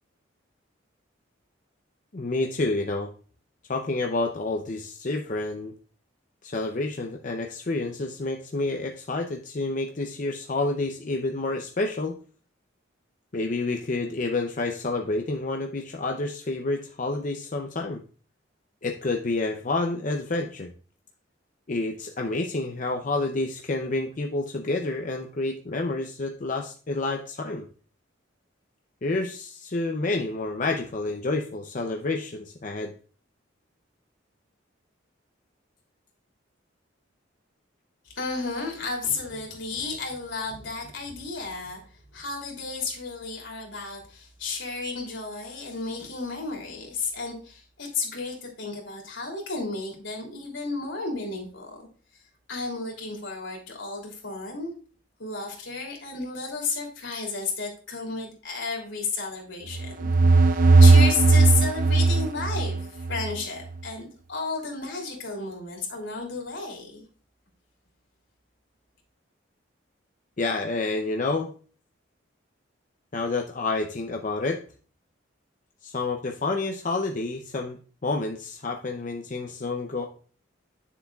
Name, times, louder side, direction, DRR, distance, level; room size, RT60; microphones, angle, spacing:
voice 1, 2.1-3.1 3.7-5.7 6.4-12.2 13.3-18.0 18.8-20.7 21.7-27.7 29.0-32.9 70.4-71.5 73.1-74.6 75.8-80.1, left 2 dB, 40° left, 3 dB, 0.6 m, -29 dB
voice 2, 38.1-41.8 42.1-51.9 52.5-54.7 55.2-60.0 60.3-67.0, left 4 dB, 75° left, 0 dB, 3.0 m, -33 dB
sound 1, 59.7-63.4, right 3 dB, 45° right, 0.4 m, -17 dB
9.6 x 6.9 x 2.4 m, 0.40 s
head